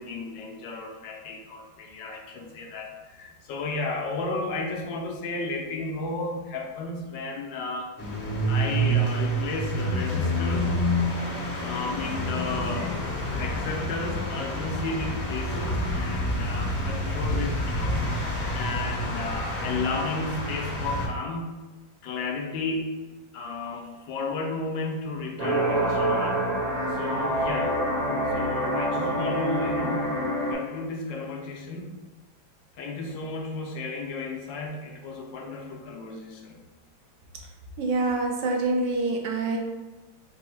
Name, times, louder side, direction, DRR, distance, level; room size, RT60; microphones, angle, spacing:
voice 1, 0.0-7.9 8.5-10.8 11.6-13.0 13.4-21.6 22.0-23.0 23.3-26.4 26.9-27.8 28.3-30.2 30.5-31.9 32.8-36.6, left 3 dB, 80° left, 1 dB, 1.3 m, -33 dB
sound 1, 8.0-21.1, equal, 55° left, 1.5 m, -28 dB
sound 2, 25.4-30.5, right 1 dB, 30° right, 0.9 m, -26 dB
voice 2, 37.8-39.6, right 2 dB, 70° right, 1 dB, 1.2 m, -26 dB
4.6 x 2.0 x 4.4 m, 1.2 s
omnidirectional pair, 2.1 m